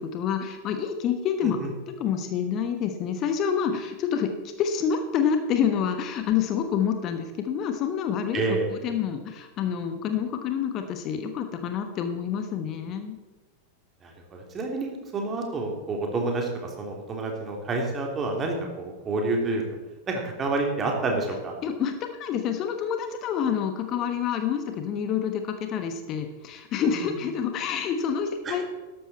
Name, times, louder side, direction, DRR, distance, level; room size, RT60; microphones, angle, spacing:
voice 1, 0.0-1.6 1.9-13.2 21.6-28.6, left 7 dB, 35° left, 7 dB, 1.2 m, -28 dB
voice 2, 8.3-8.7 14.0-19.6 20.1-21.5 26.8-27.2 28.4-28.6, right 3 dB, 25° right, 1 dB, 3.2 m, -29 dB
13.5 x 11.5 x 4.3 m, 1.3 s
figure-of-eight pair, 90°, 0 cm